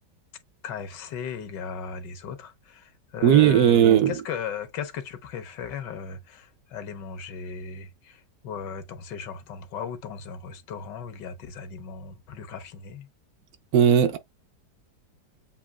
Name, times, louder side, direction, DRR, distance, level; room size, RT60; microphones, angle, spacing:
voice 1, 0.6-13.1, left 6 dB, 80° left, 1.6 m, -37 dB
voice 2, 3.2-4.1 13.7-14.2, right 9 dB, 70° right, 1.0 m, -17 dB
8.5 x 2.8 x 2.2 m
omnidirectional pair, 1.9 m